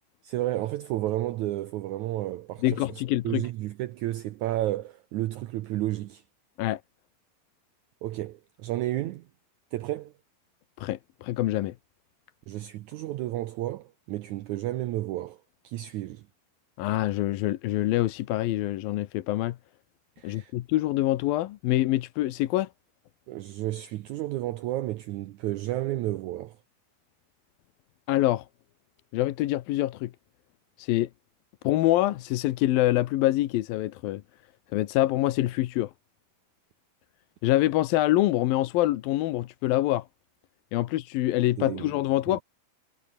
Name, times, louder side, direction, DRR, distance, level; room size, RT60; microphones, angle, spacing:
voice 1, 0.2-2.9 3.2-6.2 8.0-9.3 9.7-10.1 12.5-15.4 15.6-16.2 20.2-20.5 23.3-26.6 41.6-41.9 42.3-42.4, right 15 dB, 85° right, 1.7 m, -32 dB
voice 2, 2.6-3.5 6.6-6.8 10.8-11.7 16.8-19.6 20.2-22.7 28.1-28.5 29.1-30.1 30.8-31.1 31.6-34.2 34.7-35.9 37.4-40.1 40.7-42.4, left 15 dB, 75° left, 2.6 m, -25 dB
omnidirectional pair, 4.4 m